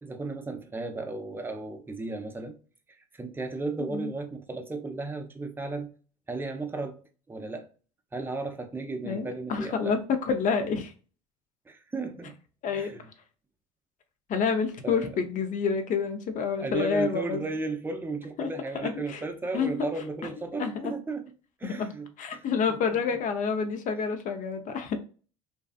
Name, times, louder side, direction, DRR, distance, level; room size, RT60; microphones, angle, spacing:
voice 1, 0.0-2.6 3.1-5.9 6.3-7.0 7.3-7.7 8.1-9.9 11.7-12.3 12.8-13.1 14.8-15.2 16.6-21.2 21.6-23.2, right 3 dB, 10° right, 0.5 m, -35 dB
voice 2, 3.8-4.1 9.0-10.0 10.3-10.9 12.6-13.0 14.3-17.4 18.4-18.5 18.7-19.2 19.5-19.8 20.2-20.3 20.6-20.9 21.6-21.9 22.2-25.0, left 5 dB, 50° left, 0.6 m, -28 dB
2.6 x 2.2 x 2.3 m
hypercardioid pair, 75°, 17 cm